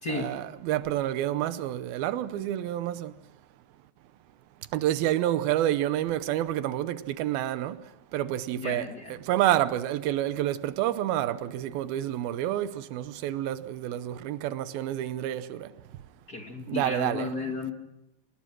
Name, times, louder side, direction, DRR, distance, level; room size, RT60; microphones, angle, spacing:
voice 1, 0.1-3.1 4.7-7.8 8.1-15.7 16.7-17.3, right 13 dB, 90° right, 2.7 m, -29 dB
voice 2, 8.5-9.2 16.3-17.7, left 3 dB, 30° left, 2.2 m, -33 dB
28.0 x 19.5 x 6.2 m
omnidirectional pair, 4.2 m